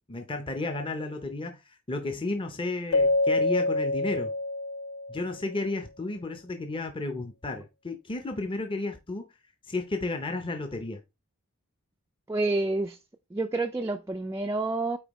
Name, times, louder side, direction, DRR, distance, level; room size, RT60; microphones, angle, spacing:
voice 1, 0.0-4.3 5.1-9.3 9.6-11.0, left 2 dB, 25° left, 0.6 m, -33 dB
Keyboard (musical), 2.9-5.4, left 2 dB, 75° left, 0.4 m, -26 dB
voice 2, 12.3-13.0 13.3-15.0, right 2 dB, 15° right, 0.3 m, -28 dB
8.8 x 4.2 x 3.0 m
head